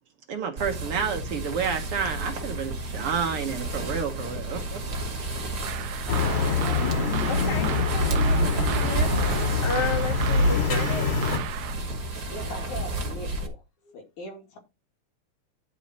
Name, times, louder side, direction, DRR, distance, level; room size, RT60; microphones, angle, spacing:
voice 1, 0.3-4.8, right 6 dB, 60° right, 1.8 m, -30 dB
sound 1, 0.6-13.5, right 2 dB, 35° right, 2.1 m, -31 dB
sound 2, 5.6-11.7, right 13 dB, 85° right, 2.1 m, -35 dB
sound 3, 6.1-11.4, left 4 dB, 50° left, 3.0 m, -25 dB
voice 2, 7.2-11.1, left 3 dB, 30° left, 0.5 m, -33 dB
voice 3, 12.3-14.6, left 2 dB, 80° left, 3.7 m, -40 dB
10.5 x 5.7 x 4.3 m
omnidirectional pair, 3.4 m